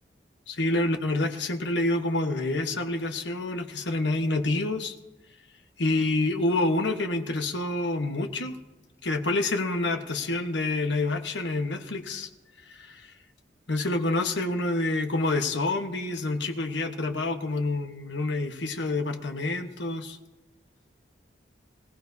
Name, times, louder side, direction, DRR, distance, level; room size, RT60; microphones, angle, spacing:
voice 1, 0.5-5.0 5.8-8.5 9.0-12.3 12.7-13.1 13.7-20.2, left 2 dB, 75° left, 5 dB, 1.3 m, -27 dB
24.5 x 15.5 x 2.8 m, 1.1 s
head